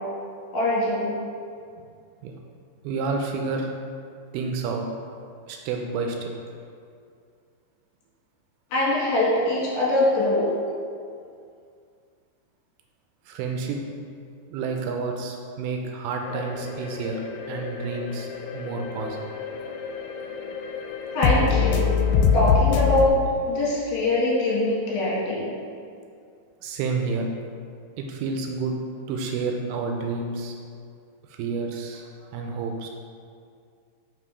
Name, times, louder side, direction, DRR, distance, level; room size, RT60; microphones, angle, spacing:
voice 1, 0.5-1.1 8.7-10.5 21.1-21.9 22.3-23.2 23.5-25.5, left 1 dB, 70° left, -6 dB, 3.0 m, -23 dB
voice 2, 2.8-3.7 4.3-4.9 5.5-6.3 13.3-13.8 14.5-17.2 17.5-18.3 18.5-19.2 26.6-27.3 28.0-28.7 29.1-30.5 31.3-32.9, right 4 dB, 85° right, 2 dB, 2.4 m, -29 dB
sound 1, 16.3-23.1, left 6 dB, 85° left, 2.6 m, -25 dB
5.7 x 4.8 x 4.8 m, 2.3 s
omnidirectional pair, 4.7 m